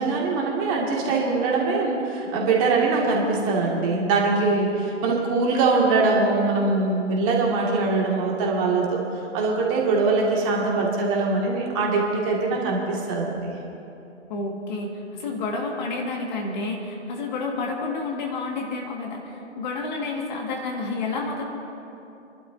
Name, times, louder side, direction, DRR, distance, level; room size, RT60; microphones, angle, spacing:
voice 1, 0.0-9.1 9.3-13.5, right 3 dB, 25° right, -2 dB, 2.1 m, -22 dB
voice 2, 14.3-21.4, left 3 dB, 40° left, 0 dB, 1.8 m, -30 dB
29.5 x 11.5 x 2.7 m, 2.8 s
figure-of-eight pair, 130°, 37 cm